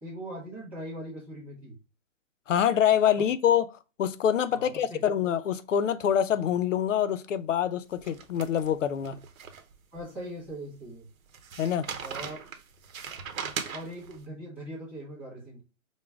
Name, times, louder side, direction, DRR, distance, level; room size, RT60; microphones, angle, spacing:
voice 1, 0.0-1.8 3.2-3.3 4.5-5.0 9.9-11.1 12.0-12.4 13.7-15.6, right 1 dB, 5° right, 1.2 m, -40 dB
voice 2, 2.5-3.6 4.0-9.2 11.6-11.9, left 9 dB, 70° left, 0.6 m, -25 dB
sound 1, 8.0-10.0 10.5-10.6 11.3-14.2, right 6 dB, 85° right, 0.9 m, -39 dB
5.1 x 2.2 x 3.5 m
hypercardioid pair, 175°, 40 cm